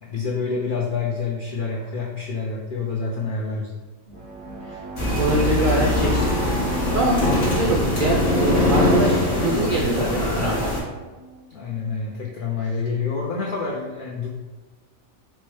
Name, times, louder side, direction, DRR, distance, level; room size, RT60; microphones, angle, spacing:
voice 1, 0.0-3.8 7.7-8.0 11.5-14.3, left 4 dB, 75° left, -3 dB, 0.4 m, -28 dB
sound 1, 4.1-11.6, right 3 dB, 30° left, 0.7 m, -38 dB
sound 2, 5.0-10.8, left 1 dB, 50° left, 1.3 m, -21 dB
voice 2, 5.2-6.3 6.9-10.7, right 2 dB, 75° right, -2 dB, 0.4 m, -24 dB
4.5 x 2.1 x 3.0 m, 1.3 s
omnidirectional pair, 1.4 m